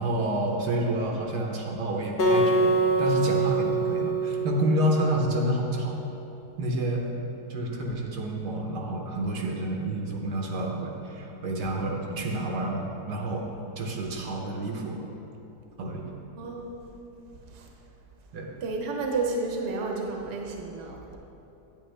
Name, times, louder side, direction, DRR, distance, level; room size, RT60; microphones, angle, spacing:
voice 1, 0.0-2.7 3.0-6.0 6.6-7.1 7.5-13.5 13.8-15.0 15.8-16.0 18.3-18.5, right 1 dB, 75° right, 0 dB, 1.5 m, -29 dB
Acoustic guitar, 2.2-5.4, right 2 dB, 70° left, 1.4 m, -25 dB
voice 2, 16.3-16.9 17.5-17.7 18.6-21.2, right 3 dB, 50° right, 0 dB, 1.1 m, -31 dB
9.0 x 8.9 x 3.3 m, 2.9 s
omnidirectional pair, 1.8 m